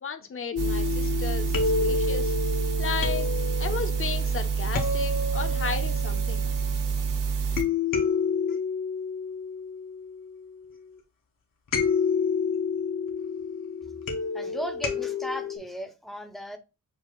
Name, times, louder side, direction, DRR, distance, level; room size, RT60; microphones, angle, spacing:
voice 1, 0.0-2.3 2.8-3.3 3.6-6.5, left 6 dB, 40° left, 0.6 m, -34 dB
sound 1, 0.5-7.0 7.6-10.6 11.7-15.6, left 5 dB, 80° left, 1.1 m, -29 dB
sound 2, 0.6-7.6, right 6 dB, 70° right, 0.8 m, -27 dB
voice 2, 14.3-16.6, equal, ahead, 0.6 m, -36 dB
6.6 x 2.4 x 3.0 m
wide cardioid pair, 130°, 33 cm